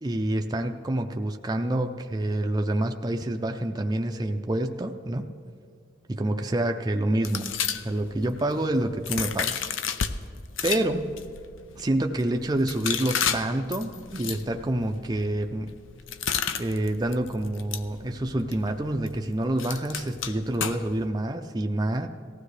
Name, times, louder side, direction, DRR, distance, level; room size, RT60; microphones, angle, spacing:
voice 1, 0.0-5.3 6.1-9.9 10.6-11.1 11.8-15.7 16.6-22.1, right 1 dB, 20° right, 4 dB, 0.5 m, -27 dB
sound 1, 7.2-10.1 10.5-21.1, left 8 dB, 80° left, 0.6 m, -33 dB
18.5 x 15.0 x 3.3 m, 2.3 s
head